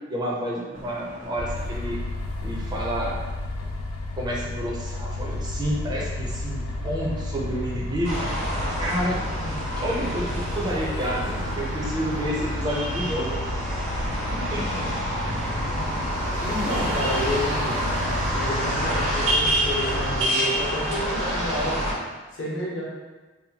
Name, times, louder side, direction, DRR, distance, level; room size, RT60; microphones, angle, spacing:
voice 1, 0.1-2.0 2.4-3.1 4.2-8.4 8.8-9.2 9.8-13.4 14.3-14.8 15.3-15.4, equal, 20° right, -3 dB, 0.4 m, -29 dB
sound 1, 0.7-19.7, right 1 dB, 70° right, 0.6 m, -42 dB
sound 2, 1.4-20.2, left 2 dB, 85° left, 0.3 m, -32 dB
sound 3, 8.0-21.9, equal, 90° right, 1.2 m, -28 dB
voice 2, 15.5-15.9 16.4-17.8 18.3-21.8 22.3-22.8, left 1 dB, 65° left, -5 dB, 0.8 m, -30 dB
2.7 x 2.1 x 2.8 m, 1.2 s
head